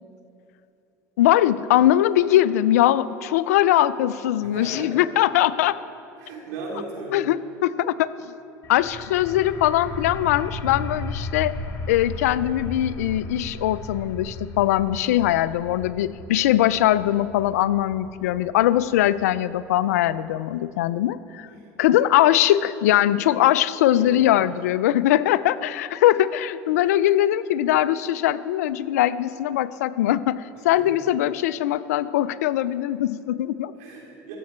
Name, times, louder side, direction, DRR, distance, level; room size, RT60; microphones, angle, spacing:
voice 1, 1.2-5.8 7.1-8.1 8.7-11.5 11.9-21.5 21.8-33.7, left 13 dB, 90° left, 17 dB, 0.3 m, -21 dB
voice 2, 4.4-5.0 6.2-7.3 14.9-15.1 21.5-21.7 24.0-24.1 26.1-26.2 30.8-30.9 33.8-34.4, right 3 dB, 80° right, -2 dB, 2.8 m, -37 dB
sound 1, 8.6-20.1, left 2 dB, 40° left, 1.2 m, -36 dB
14.5 x 7.5 x 4.3 m, 2.8 s
supercardioid pair, 95°, 8 cm